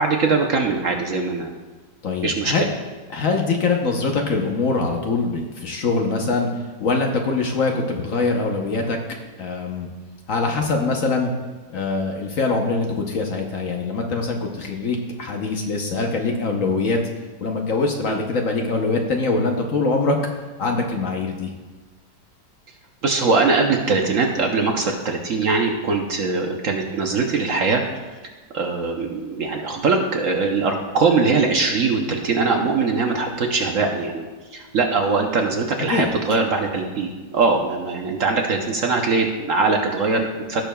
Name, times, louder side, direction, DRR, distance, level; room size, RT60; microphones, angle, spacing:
voice 1, 0.0-1.5 2.2-2.7 18.1-18.2 23.0-27.8 28.5-40.6, right 4 dB, 60° right, 2 dB, 1.0 m, -21 dB
voice 2, 2.0-2.6 3.1-6.5 6.8-9.0 9.4-9.9 10.3-11.3 11.7-17.0 17.4-20.2 20.6-21.5 35.9-36.1, left 3 dB, 55° left, 2 dB, 1.1 m, -23 dB
16.5 x 6.7 x 2.3 m, 1.3 s
omnidirectional pair, 1.9 m